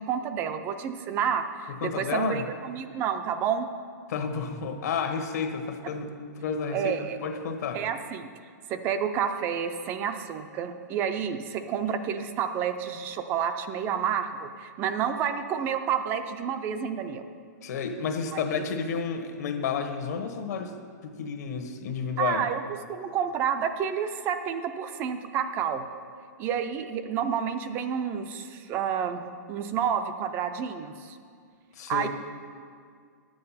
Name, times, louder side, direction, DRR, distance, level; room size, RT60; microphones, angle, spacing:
voice 1, 0.0-3.7 6.7-7.2 7.7-8.3 8.7-17.2 18.3-18.6 22.2-22.6 22.9-25.9 26.4-29.2 29.5-31.2 31.9-32.1, right 8 dB, 20° right, 8 dB, 0.4 m, -29 dB
voice 2, 1.7-2.4 4.1-7.8 17.6-20.7 21.0-22.4 31.7-32.1, left 6 dB, 60° left, 6 dB, 1.2 m, -31 dB
9.9 x 7.7 x 5.7 m, 2.1 s
hypercardioid pair, 160°, 10 cm